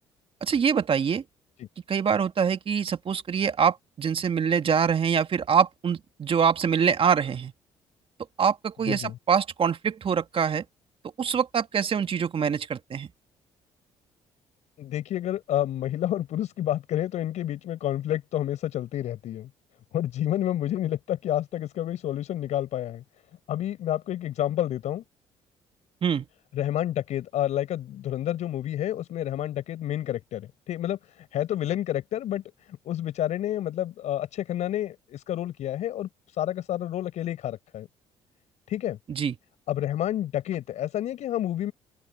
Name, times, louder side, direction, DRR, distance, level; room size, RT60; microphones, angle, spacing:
voice 1, 0.4-1.2 1.9-7.5 8.4-10.6 11.2-13.1 26.0-26.3 39.1-39.3, right 7 dB, 45° right, 1.9 m, -24 dB
voice 2, 14.8-19.5 19.9-23.0 23.5-25.0 26.5-32.4 32.7-36.1 36.4-37.9 38.7-39.0 39.7-41.7, left 12 dB, 65° left, 6.0 m, -29 dB
open air
hypercardioid pair, 55°, 13 cm